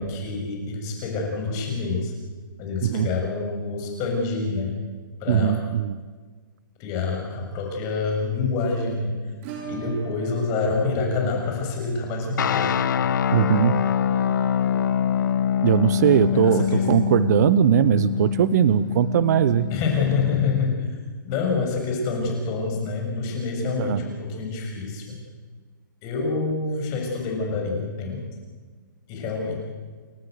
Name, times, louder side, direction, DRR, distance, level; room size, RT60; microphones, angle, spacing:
voice 1, 0.0-2.1 2.6-4.8 5.2-5.6 6.8-9.2 9.7-12.7 16.3-16.9 19.7-21.0 21.2-25.2 26.0-28.3 29.1-29.6, left 4 dB, 30° left, 1 dB, 7.1 m, -27 dB
voice 2, 5.3-6.0 13.3-13.9 15.6-19.7 23.8-24.0, right 11 dB, 55° right, 17 dB, 0.8 m, -20 dB
Acoustic guitar / Strum, 9.4-18.0 18.3-18.4 18.7-18.8 19.1-19.2 21.3-21.4 22.5-22.6, right 4 dB, 35° right, 4.4 m, -44 dB
sound 1, 12.4-20.6, left 9 dB, 65° left, 1.1 m, -24 dB
30.0 x 13.0 x 8.2 m, 1.4 s
hypercardioid pair, 145°, 11 cm